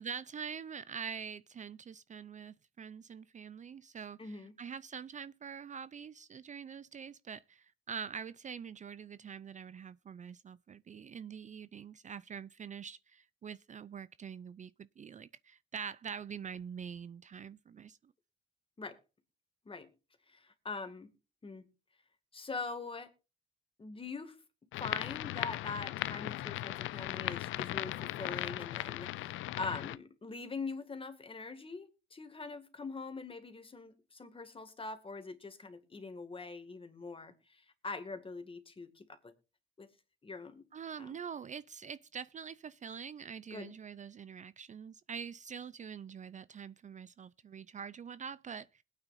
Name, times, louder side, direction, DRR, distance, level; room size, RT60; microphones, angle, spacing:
voice 1, 0.0-18.1 40.7-48.8, right 7 dB, 40° right, 0.5 m, -45 dB
voice 2, 4.2-4.5 18.8-19.0 19.7-19.9 20.3-21.1 21.4-21.6 22.3-23.1 23.8-24.4 24.8-39.3 39.8-39.9 40.2-40.7 41.0-41.2 43.5-43.8, left 4 dB, 25° left, 2.1 m, -43 dB
sound 1, 24.7-30.0, left 15 dB, 85° left, 0.5 m, -38 dB
21.0 x 9.0 x 2.6 m
cardioid pair, 90°, 20 cm